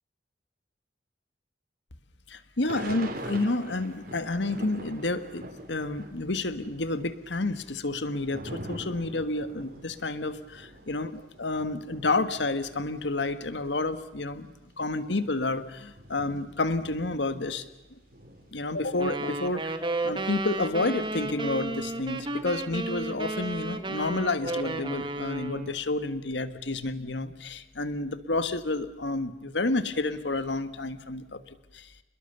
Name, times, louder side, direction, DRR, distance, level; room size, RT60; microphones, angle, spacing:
voice 1, 2.3-17.7 18.5-31.4 31.7-31.9, left 2 dB, 90° left, 11 dB, 1.5 m, -30 dB
Thunder / Rain, 2.7-6.3 6.6-13.7 14.3-14.4 14.5-17.7 18.1-19.8, right 1 dB, 55° right, 3.6 m, -44 dB
sound 1, 19.0-25.8, right 2 dB, 30° right, 1.6 m, -33 dB
29.0 x 21.5 x 6.9 m, 1.0 s
head